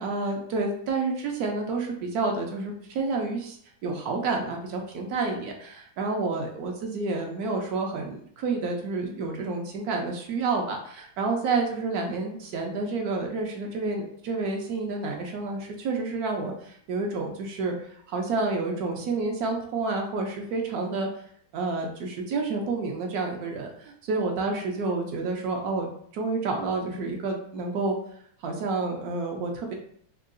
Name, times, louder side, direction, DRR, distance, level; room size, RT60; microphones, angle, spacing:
voice 1, 0.0-21.1 21.5-25.9 26.1-28.0 28.4-29.7, right 3 dB, 70° right, 2 dB, 1.0 m, -29 dB
3.6 x 2.3 x 2.5 m, 0.63 s
omnidirectional pair, 1.8 m